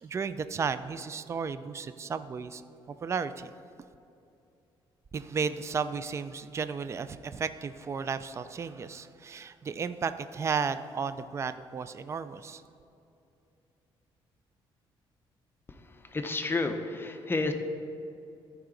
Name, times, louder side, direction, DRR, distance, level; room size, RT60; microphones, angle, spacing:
voice 1, 0.0-2.6 2.9-3.5 5.1-12.6, right 5 dB, 30° right, 12 dB, 0.3 m, -34 dB
voice 2, 16.1-17.5, left 3 dB, 25° left, 6 dB, 0.7 m, -30 dB
14.0 x 4.8 x 3.8 m, 2.6 s
cardioid pair, 110°, 10 cm